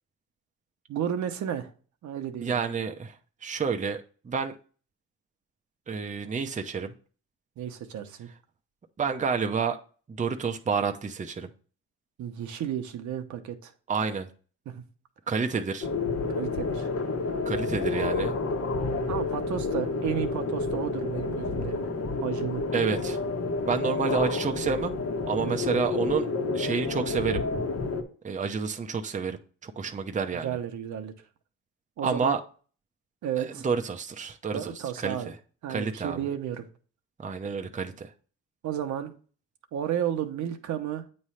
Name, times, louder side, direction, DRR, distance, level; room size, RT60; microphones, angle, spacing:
voice 1, 0.9-1.7 2.0-2.6 7.6-8.3 12.2-13.7 14.7-14.8 16.3-16.9 19.1-21.9 22.2-22.7 25.4-25.6 30.3-31.1 32.0-32.4 33.2-33.7 34.5-35.3 35.6-36.7 38.6-39.1 39.7-41.0, right 9 dB, 70° right, 6 dB, 1.0 m, -32 dB
voice 2, 2.4-3.2 3.4-4.5 5.9-6.9 9.0-9.8 10.1-11.5 13.9-14.3 15.3-15.9 17.4-18.3 22.7-23.2 23.6-24.9 25.3-26.3 26.5-27.4 28.2-30.6 32.0-32.4 33.4-35.3 35.7-36.2 37.2-38.1, right 5 dB, 25° right, 5 dB, 0.7 m, -29 dB
sound 1, 15.8-28.0, left 3 dB, 50° left, 1.3 m, -29 dB
8.6 x 3.2 x 5.7 m, 0.40 s
cardioid pair, 90°, 30 cm